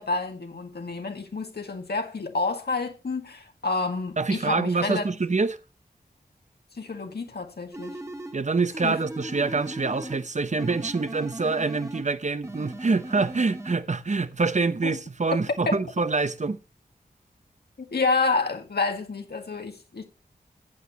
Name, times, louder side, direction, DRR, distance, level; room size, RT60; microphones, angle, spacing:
voice 1, 0.0-5.0 6.8-8.0 8.8-9.0 14.8-14.9 15.7-15.8 17.8-20.0, left 3 dB, 75° left, 1.9 m, -29 dB
voice 2, 4.2-5.6 8.3-16.6, right 4 dB, 45° right, 0.9 m, -26 dB
sound 1, 7.7-8.4 8.7-10.3 10.6-12.1 12.4-13.8, right 1 dB, 20° right, 1.8 m, -38 dB
15.0 x 8.3 x 3.0 m
wide cardioid pair, 65°, 17 cm